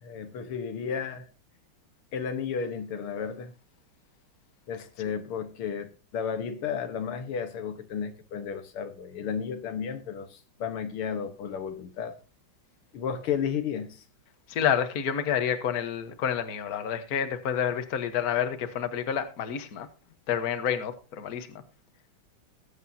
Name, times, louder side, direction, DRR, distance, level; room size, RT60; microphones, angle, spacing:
voice 1, 0.0-1.2 2.1-3.5 4.7-12.2 12.9-14.0, left 7 dB, 90° left, 2.1 m, -33 dB
voice 2, 14.5-19.9 20.3-21.5, left 8 dB, 50° left, 1.5 m, -29 dB
21.0 x 8.2 x 2.8 m
omnidirectional pair, 2.3 m